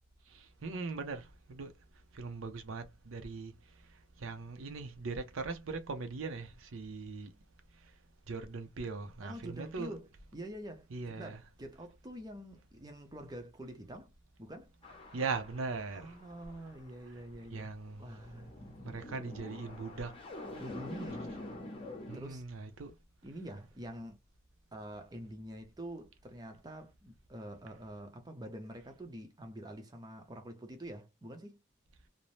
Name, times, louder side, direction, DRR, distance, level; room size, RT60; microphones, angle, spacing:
voice 1, 0.3-1.7 2.1-7.4 7.8-7.9 8.3-9.9 10.9-11.4 15.1-16.2 17.5-18.0 18.8-20.2 22.1-22.9, right 4 dB, 80° right, 0.6 m, -40 dB
voice 2, 9.2-14.1 14.4-14.7 15.9-17.7 18.0-18.5 20.6-21.2 22.1-22.4 23.2-24.2 24.7-31.6, right 1 dB, 20° right, 0.5 m, -46 dB
sound 1, 14.8-17.3 17.8-22.2, left 1 dB, 25° left, 0.7 m, -47 dB
2.6 x 2.0 x 3.0 m
head